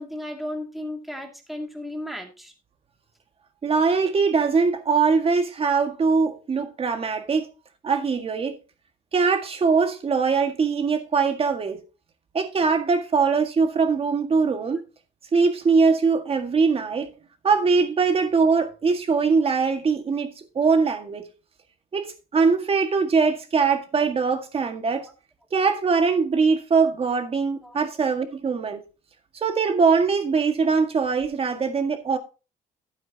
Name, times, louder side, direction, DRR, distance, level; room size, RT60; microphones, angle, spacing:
voice 1, 0.0-2.5 25.0-25.1 27.6-27.8, left 1 dB, ahead, 2.4 m, -34 dB
voice 2, 3.6-7.5 7.8-8.6 9.1-11.8 12.3-14.8 15.3-17.1 17.4-21.2 21.9-25.1 25.5-28.8 29.3-32.2, right 5 dB, 35° right, 1.8 m, -22 dB
11.5 x 9.2 x 2.9 m
cardioid pair, 110°, 17 cm